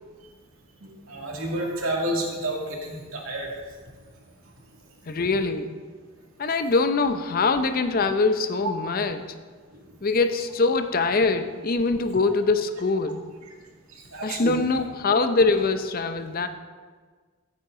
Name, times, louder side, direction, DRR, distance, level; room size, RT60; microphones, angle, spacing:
voice 1, 1.1-3.5 14.1-14.6, right 1 dB, 80° right, -1 dB, 2.3 m, -29 dB
voice 2, 5.1-5.9 6.4-9.3 10.0-13.3 14.2-16.5, left 3 dB, 45° left, 9 dB, 0.6 m, -23 dB
14.5 x 8.9 x 3.8 m, 1.5 s
head